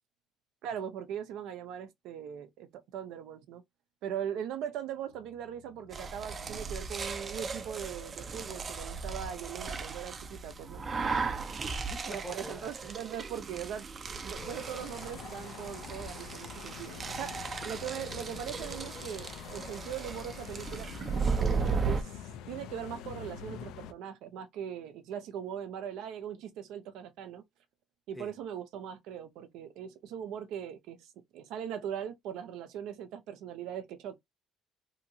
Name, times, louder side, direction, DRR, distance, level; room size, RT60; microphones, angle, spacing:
voice 1, 0.6-3.6 4.0-10.8 12.0-13.9 14.2-22.2 22.5-27.4 28.1-34.2, right 9 dB, 80° right, 0.6 m, -40 dB
sound 1, 5.1-11.9, left 7 dB, 65° left, 0.7 m, -60 dB
sound 2, 5.9-22.0, right 4 dB, 30° right, 0.5 m, -36 dB
voice 2, 10.8-12.7 28.1-28.4, left 1 dB, 10° left, 0.6 m, -47 dB
sound 3, 14.4-23.9, left 8 dB, 90° left, 0.4 m, -45 dB
2.8 x 2.8 x 2.6 m
cardioid pair, 140°, 0 cm